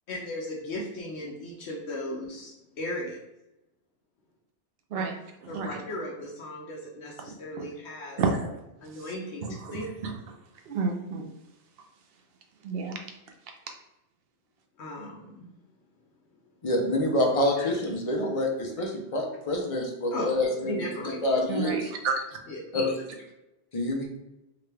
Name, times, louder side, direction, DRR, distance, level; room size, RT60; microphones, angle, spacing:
voice 1, 0.1-3.2 5.5-8.2 8.8-9.9 14.8-15.5 17.6-17.7 20.1-20.2 20.6-21.2 22.5-22.6, left 1 dB, 70° left, -2 dB, 0.9 m, -36 dB
voice 2, 5.4-5.8 7.6-7.7 8.2-8.5 9.4-10.1 10.7-11.3 12.6-13.0 21.5-22.4, right 4 dB, 65° right, 4 dB, 0.7 m, -30 dB
voice 3, 16.6-21.9 22.7-22.9 23.7-24.1, left 1 dB, 45° left, 1 dB, 0.5 m, -27 dB
3.9 x 2.2 x 3.2 m, 0.91 s
omnidirectional pair, 1.2 m